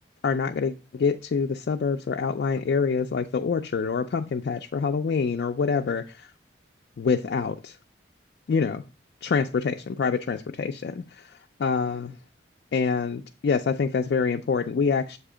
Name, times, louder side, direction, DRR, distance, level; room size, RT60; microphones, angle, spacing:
voice 1, 0.2-6.3 7.0-7.8 8.5-8.8 9.2-11.3 11.6-12.2 12.7-15.2, left 5 dB, 60° left, 0.3 m, -26 dB
7.3 x 2.8 x 4.8 m
head